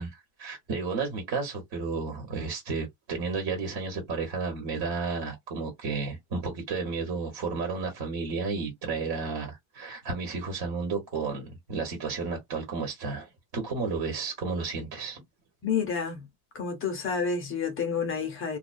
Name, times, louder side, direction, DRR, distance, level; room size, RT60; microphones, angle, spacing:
voice 1, 0.0-15.2, right 4 dB, 45° right, 1.3 m, -32 dB
voice 2, 15.6-16.3 16.5-18.6, left 6 dB, 25° left, 0.6 m, -29 dB
2.3 x 2.2 x 2.5 m
cardioid pair, 145°, 49 cm